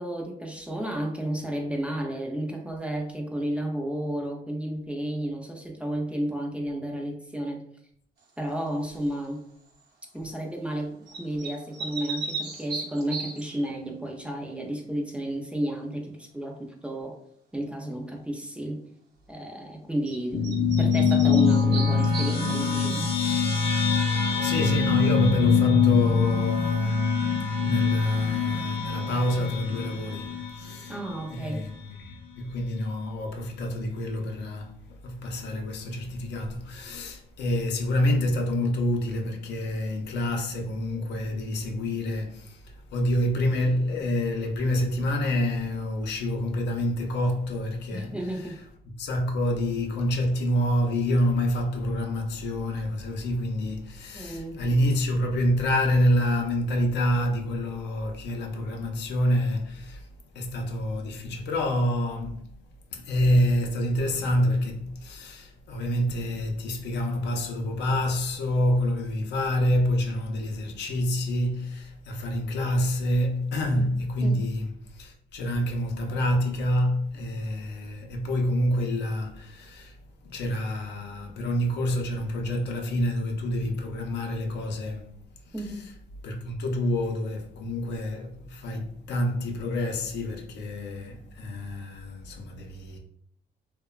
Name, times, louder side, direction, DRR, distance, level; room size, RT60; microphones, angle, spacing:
voice 1, 0.0-7.6 8.4-9.4 10.1-17.2 17.5-18.8 19.3-23.1 30.9-31.7 47.9-48.6 54.1-54.6 73.8-73.9 74.2-74.4 85.5-85.9, right 1 dB, 5° right, 0.3 m, -32 dB
sound 1, 8.9-9.3 11.1-13.7 20.1-20.2 20.4-22.9, right 4 dB, 70° right, 0.7 m, -36 dB
sound 2, 20.3-31.1, left 5 dB, 35° left, 0.6 m, -24 dB
voice 2, 24.4-30.9 31.3-31.7 32.0-48.5 48.8-60.1 60.3-62.5 62.9-80.0 80.2-85.2 85.5-85.6 86.2-93.0, left 1 dB, 90° left, 0.5 m, -27 dB
2.8 x 2.1 x 2.2 m
cardioid pair, 125°, 17 cm